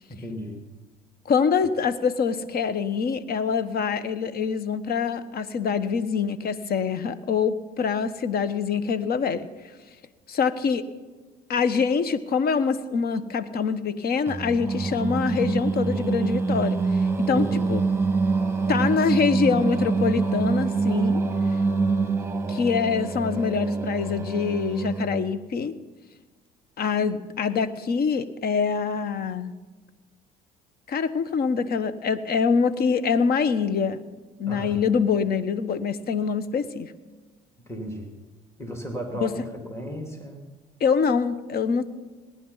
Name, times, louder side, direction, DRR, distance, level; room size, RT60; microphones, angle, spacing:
voice 1, 0.1-0.6 17.3-17.8 34.5-34.8 37.7-38.1 38.6-40.4, equal, 15° left, 2 dB, 3.0 m, -35 dB
voice 2, 1.3-9.5 10.3-10.9 11.5-16.8 17.2-17.8 18.7-21.2 22.5-25.7 26.8-29.5 30.9-34.0 34.4-36.9 39.2-39.3 40.8-41.8, left 6 dB, 55° left, 14 dB, 1.1 m, -25 dB
Singing, 14.3-25.4, right 4 dB, 15° right, 1.4 m, -25 dB
18.5 x 10.0 x 5.7 m, 1.3 s
hypercardioid pair, 70°, 19 cm